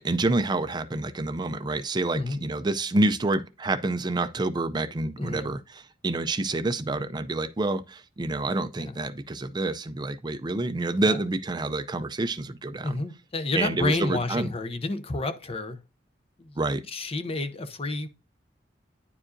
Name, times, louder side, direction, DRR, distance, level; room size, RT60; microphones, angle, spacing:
voice 1, 0.0-13.0 13.6-14.5 16.6-16.8, right 2 dB, 25° right, 0.4 m, -28 dB
voice 2, 5.2-5.5 8.8-8.9 11.1-11.2 12.8-15.8 16.4-16.5 16.9-18.1, left 2 dB, 35° left, 0.7 m, -30 dB
9.7 x 4.8 x 2.6 m
head